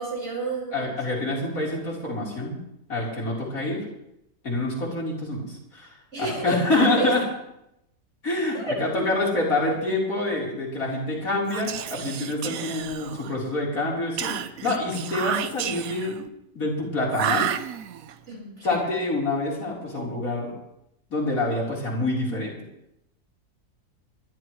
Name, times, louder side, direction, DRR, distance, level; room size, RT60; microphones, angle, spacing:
voice 1, 0.0-0.9 6.1-7.1 8.5-9.1 18.3-18.7, right 2 dB, 45° right, -3 dB, 5.7 m, -30 dB
voice 2, 0.7-2.6 2.9-3.8 4.4-5.9 6.2-7.2 8.2-16.3 16.5-17.5 18.6-20.5 21.1-22.6, left 2 dB, 65° left, -4 dB, 4.5 m, -26 dB
Whispering, 11.4-13.4 14.2-16.2 17.1-18.1, right 10 dB, 70° right, 1.1 m, -31 dB
23.0 x 12.0 x 3.2 m, 0.83 s
omnidirectional pair, 1.6 m